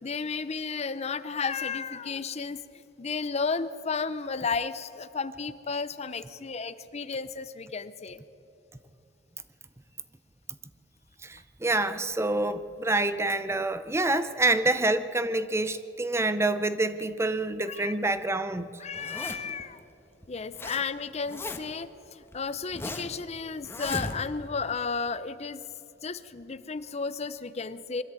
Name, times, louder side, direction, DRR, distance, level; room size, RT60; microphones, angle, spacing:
voice 1, 0.0-2.6 3.0-8.2 11.9-12.0 17.7-18.0 18.8-19.8 20.3-25.6 26.0-28.0, left 5 dB, 35° left, 0.6 m, -33 dB
voice 2, 11.2-18.7, right 2 dB, 15° right, 0.6 m, -27 dB
Zipper (clothing), 18.9-19.6 20.2-20.8 21.1-21.8 22.3-23.2 23.6-24.5, left 1 dB, 15° left, 1.3 m, -37 dB
22.5 x 13.5 x 8.8 m
head